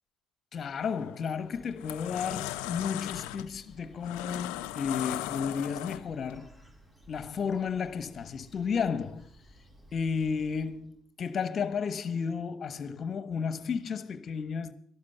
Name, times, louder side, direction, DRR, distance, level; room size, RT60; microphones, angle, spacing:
voice 1, 0.5-6.5 7.1-9.3 9.9-14.7, left 6 dB, 45° left, 1.2 m, -33 dB
sound 1, 0.9-1.2 1.6-6.3, left 16 dB, 80° left, 0.6 m, -37 dB
Bird, 1.2-11.1, equal, 20° right, 5.4 m, -56 dB
13.5 x 11.5 x 5.6 m
supercardioid pair, 70°, 0 cm